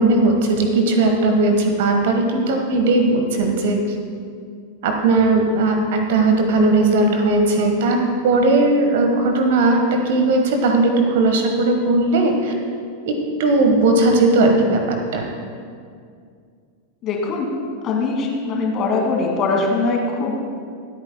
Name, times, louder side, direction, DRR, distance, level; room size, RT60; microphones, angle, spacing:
voice 1, 0.0-3.8 4.8-12.5 13.1-15.3, right 2 dB, 55° right, 4 dB, 1.4 m, -17 dB
voice 2, 17.0-17.5 17.8-20.5, left 3 dB, 30° left, -1 dB, 2.3 m, -21 dB
26.5 x 8.8 x 2.2 m, 2.2 s
figure-of-eight pair, 90°, 0 cm